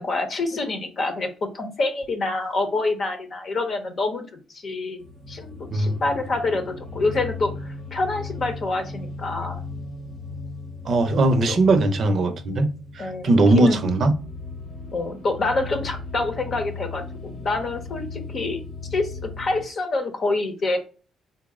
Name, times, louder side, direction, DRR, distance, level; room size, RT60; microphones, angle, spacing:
voice 1, 0.0-9.6 11.5-11.6 13.0-13.8 14.9-18.6 18.9-20.8, left 2 dB, 50° left, 0.8 m, -27 dB
sound 1, 5.0-19.7, left 3 dB, 75° left, 1.0 m, -37 dB
voice 2, 10.9-14.2, right 2 dB, 55° right, 0.6 m, -20 dB
4.1 x 2.0 x 3.6 m
cardioid pair, 90°, 0 cm